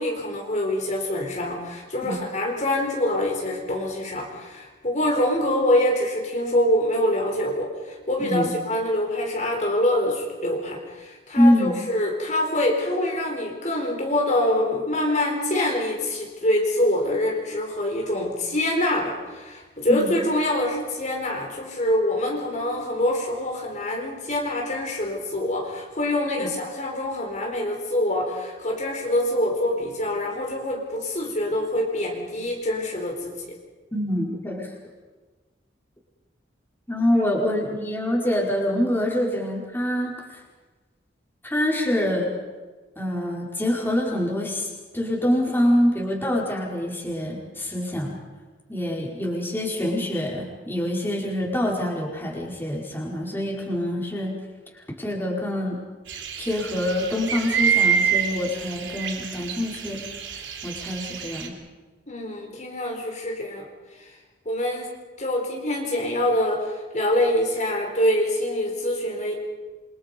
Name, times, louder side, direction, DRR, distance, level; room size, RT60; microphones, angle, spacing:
voice 1, 0.0-33.6 62.1-63.7 63.9-64.2 64.5-64.9 65.2-69.3, left 1 dB, 40° left, 0 dB, 4.1 m, -25 dB
voice 2, 8.2-8.5 11.4-11.7 19.9-20.1 26.4-26.5 33.9-34.7 36.9-40.4 41.4-42.3 43.0-44.7 44.9-48.1 48.7-54.3 55.0-55.8 56.4-60.0 60.6-61.5, left 1 dB, 10° left, -2 dB, 4.9 m, -25 dB
sound 1, 56.1-61.5, right 7 dB, 75° right, 3.4 m, -27 dB
28.5 x 25.0 x 5.4 m, 1.3 s
head